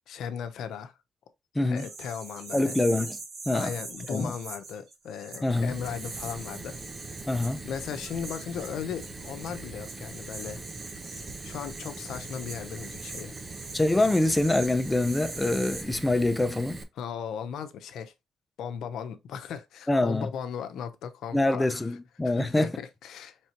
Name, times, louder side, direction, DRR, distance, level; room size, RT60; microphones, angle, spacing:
voice 1, 0.1-0.9 1.7-2.7 3.5-6.8 7.6-10.6 11.4-13.3 17.0-18.1 18.6-21.9 22.2-23.4, left 7 dB, 75° left, 0.6 m, -37 dB
voice 2, 1.5-1.9 2.5-3.2 3.5-3.7 4.1-4.3 5.4-5.8 7.3-7.6 13.7-16.8 19.9-20.3 21.3-22.7, left 2 dB, 15° left, 0.6 m, -25 dB
sound 1, 1.8-15.8, right 3 dB, 70° right, 1.8 m, -43 dB
Fire, 5.5-16.8, right 3 dB, 30° right, 0.8 m, -42 dB
4.3 x 3.3 x 2.9 m
cardioid pair, 90°, 0 cm